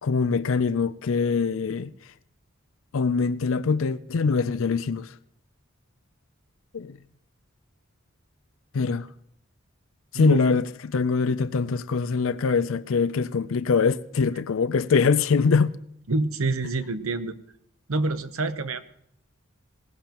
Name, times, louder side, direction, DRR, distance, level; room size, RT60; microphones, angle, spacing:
voice 1, 0.0-1.9 2.9-5.1 6.7-7.0 8.7-9.1 10.1-15.7, left 5 dB, 75° left, 0.5 m, -23 dB
voice 2, 10.1-10.4 16.1-17.4 17.9-18.8, right 3 dB, 90° right, 0.9 m, -27 dB
20.0 x 17.5 x 3.0 m
head